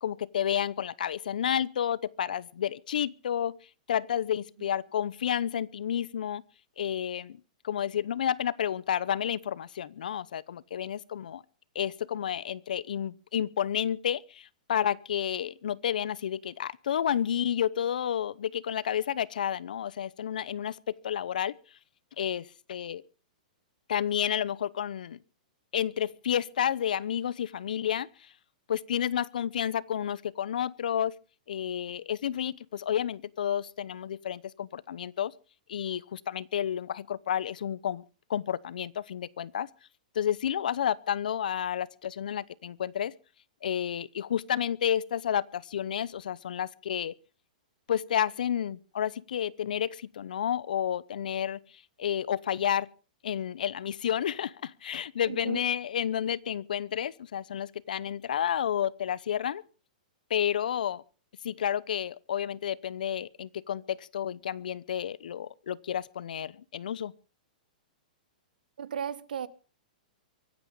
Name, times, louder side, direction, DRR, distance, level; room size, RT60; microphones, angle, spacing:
voice 1, 0.0-3.6 3.9-6.4 6.8-11.4 11.7-21.5 22.2-23.0 23.9-25.2 25.7-28.3 28.7-31.1 31.5-35.3 35.7-38.0 38.3-39.7 40.1-43.1 43.6-47.1 47.9-51.6 52.0-52.9 53.2-59.6 60.3-61.0 61.4-67.1, left 9 dB, 75° left, 0.8 m, -31 dB
voice 2, 55.2-55.7 68.8-69.5, right 8 dB, 85° right, 1.3 m, -35 dB
23.5 x 9.2 x 5.4 m
hypercardioid pair, 175°, 5 cm